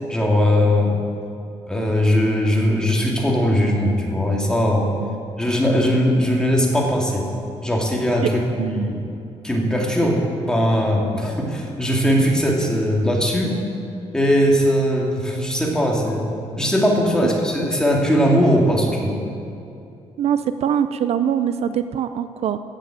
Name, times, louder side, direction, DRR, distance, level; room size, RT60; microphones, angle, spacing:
voice 1, 0.1-1.0 1.7-4.9 5.4-7.2 7.6-9.0 9.4-13.6 14.1-19.2, equal, 5° left, -1 dB, 2.4 m, -19 dB
voice 2, 8.6-8.9 17.2-17.3 20.2-22.6, right 9 dB, 65° right, 11 dB, 0.5 m, -23 dB
17.0 x 7.6 x 7.5 m, 2.7 s
cardioid pair, 130°, 12 cm